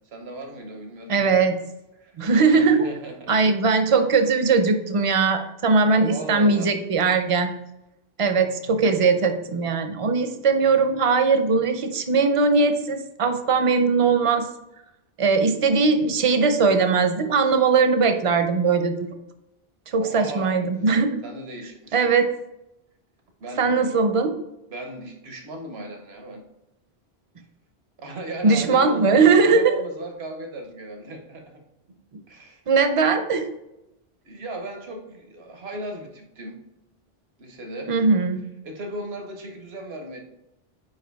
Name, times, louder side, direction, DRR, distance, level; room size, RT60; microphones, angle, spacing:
voice 1, 0.1-1.5 2.0-2.2 2.5-3.3 6.1-6.7 20.0-20.6 21.2-22.1 23.4-23.7 24.7-26.4 28.0-31.6 32.3-32.6 34.2-36.6 37.4-37.9 38.6-40.2, right 2 dB, 85° right, 3 dB, 1.2 m, -36 dB
voice 2, 1.1-1.5 2.2-2.9 3.3-7.5 8.2-14.5 15.2-19.1 19.9-21.2 21.9-22.3 23.6-24.3 28.4-29.7 32.7-33.4 37.9-38.4, right 4 dB, 40° right, 8 dB, 0.6 m, -20 dB
4.8 x 4.8 x 4.6 m, 0.90 s
omnidirectional pair, 1.0 m